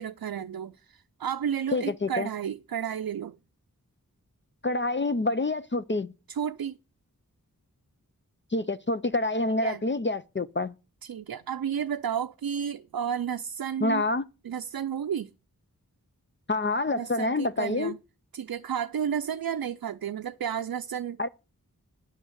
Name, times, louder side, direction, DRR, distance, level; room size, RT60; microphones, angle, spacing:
voice 1, 0.0-3.4 6.3-6.8 9.6-9.9 11.0-14.0 14.4-15.3 16.9-18.0 18.3-21.2, right 8 dB, 85° right, 0.5 m, -32 dB
voice 2, 1.7-2.3 4.6-6.1 8.5-10.7 13.8-14.2 16.5-17.9 21.2-21.3, left 2 dB, 35° left, 0.6 m, -27 dB
10.0 x 6.2 x 7.9 m
wide cardioid pair, 60°, 35 cm